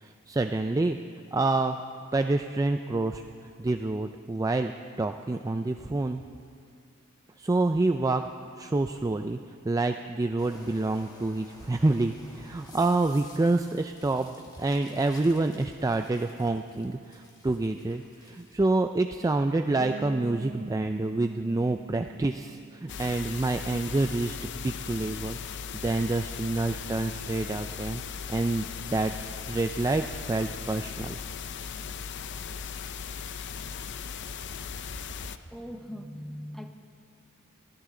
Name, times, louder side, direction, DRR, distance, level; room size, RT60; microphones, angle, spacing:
voice 1, 0.0-1.0 1.3-1.8 2.1-3.2 3.6-4.7 5.0-6.2 7.4-8.3 8.6-9.4 9.6-24.4 24.6-25.4 25.8-28.0 28.3-29.1 29.5-31.2, right 2 dB, 15° right, 6 dB, 0.3 m, -27 dB
sound 1, 10.4-18.6, left 1 dB, 20° left, 1.9 m, -52 dB
Bass guitar, 19.8-23.6, right 3 dB, 50° right, 0.7 m, -43 dB
sound 2, 22.9-35.4, left 6 dB, 55° left, 0.6 m, -38 dB
voice 2, 35.5-36.7, equal, ahead, 5 dB, 0.9 m, -40 dB
23.0 x 16.0 x 3.8 m, 2.3 s
head